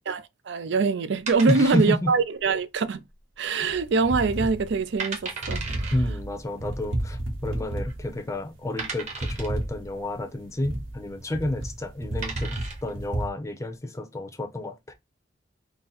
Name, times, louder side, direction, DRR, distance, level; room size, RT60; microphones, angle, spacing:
voice 1, 0.1-3.0 3.4-5.9, right 4 dB, 65° right, 0.4 m, -24 dB
sound 1, 1.3-2.2 2.5-2.6 3.2-3.6 4.0-4.1 4.6-4.7 5.0-6.0 7.0-7.1 7.8-7.9 8.8-9.6 11.4-11.6 12.0-12.9, right 4 dB, 40° right, 1.1 m, -35 dB
voice 2, 1.5-2.1 3.6-3.7 5.9-14.9, left 1 dB, 15° left, 0.6 m, -30 dB
sound 2, 3.7-13.3, right 1 dB, 85° right, 1.1 m, -32 dB
3.9 x 2.1 x 4.1 m
head